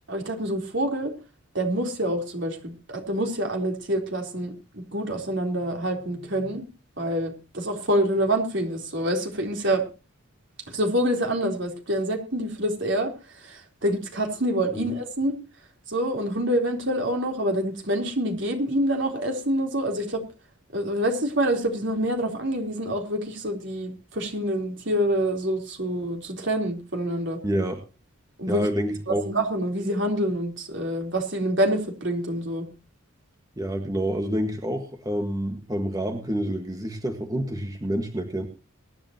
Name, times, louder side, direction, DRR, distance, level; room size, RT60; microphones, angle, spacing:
voice 1, 0.1-1.1 1.5-6.7 7.0-9.8 10.7-15.4 15.9-20.2 20.7-27.4 28.4-28.6 29.1-32.7, right 1 dB, 60° right, 3 dB, 3.9 m, -26 dB
voice 2, 27.4-27.8 28.5-29.2 33.6-38.4, equal, 15° right, 4 dB, 1.7 m, -28 dB
23.5 x 10.5 x 3.0 m, 0.32 s
head